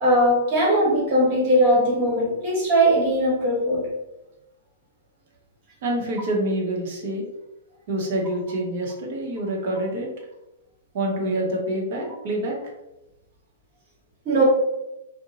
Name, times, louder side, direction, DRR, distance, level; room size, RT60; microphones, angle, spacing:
voice 1, 0.0-3.8 14.2-14.4, right 1 dB, 45° right, -3 dB, 1.2 m, -19 dB
voice 2, 5.8-7.3 7.9-10.1 10.9-12.6, right 1 dB, 65° right, -1 dB, 0.8 m, -26 dB
2.6 x 2.1 x 2.8 m, 0.94 s
hypercardioid pair, 125°, 0 cm